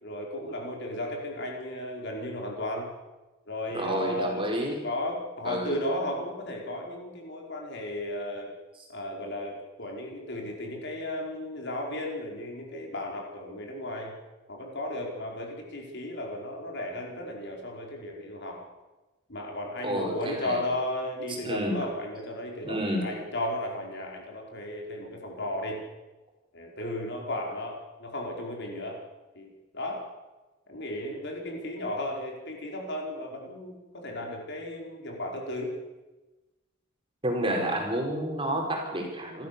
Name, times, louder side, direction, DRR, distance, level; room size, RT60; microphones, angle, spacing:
voice 1, 0.0-2.9 3.5-4.5 4.8-8.5 8.9-14.1 14.5-18.6 19.3-25.8 26.5-29.0 29.3-30.0 30.7-35.7, left 1 dB, 55° left, 0 dB, 4.8 m, -34 dB
voice 2, 3.7-4.8 5.4-5.8 19.8-20.6 21.3-21.8 22.6-23.1 37.2-39.5, right 1 dB, 25° right, 1 dB, 4.7 m, -30 dB
28.0 x 14.0 x 6.9 m, 1.1 s
head